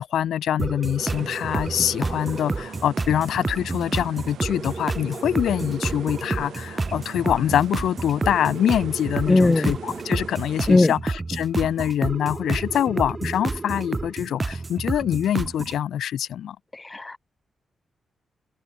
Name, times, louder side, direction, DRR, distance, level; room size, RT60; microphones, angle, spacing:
voice 1, 0.0-16.6, left 10 dB, 85° left, 0.3 m, -24 dB
sound 1, 0.6-15.8, right 3 dB, 25° right, 0.5 m, -30 dB
sound 2, 1.0-10.8, right 10 dB, 90° right, 6.1 m, -42 dB
voice 2, 9.3-9.7 10.7-10.9 16.7-17.2, left 2 dB, 20° left, 0.6 m, -18 dB
open air
cardioid pair, 120°, 0 cm